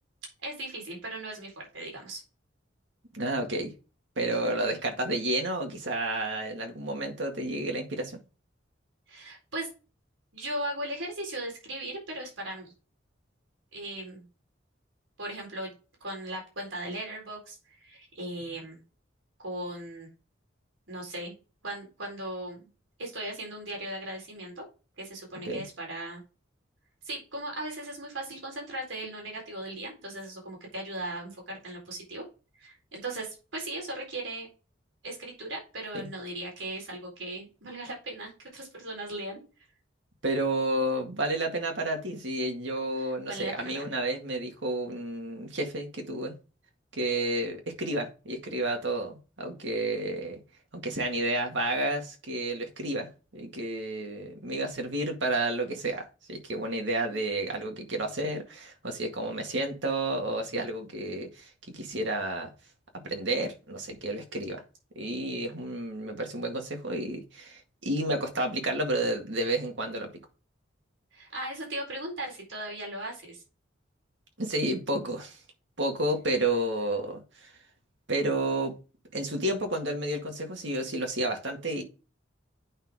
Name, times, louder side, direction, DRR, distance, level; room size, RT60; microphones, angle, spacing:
voice 1, 0.4-2.2 4.2-4.8 9.1-9.7 10.3-12.7 13.7-14.2 15.2-15.7 16.0-18.8 19.4-20.1 20.9-21.3 21.6-22.7 23.0-24.6 25.0-26.2 27.0-32.2 32.6-34.5 35.0-39.4 43.3-43.9 57.1-57.2 71.1-73.4, right 1 dB, 90° right, 4.1 m, -38 dB
voice 2, 3.1-3.7 4.2-8.2 25.4-25.6 35.9-36.1 40.2-46.4 46.9-50.4 50.7-62.5 63.0-64.6 65.0-70.1 74.4-75.4 75.8-77.5 78.1-78.7 79.1-81.8, right 1 dB, 70° right, 2.0 m, -31 dB
8.9 x 5.9 x 3.6 m
head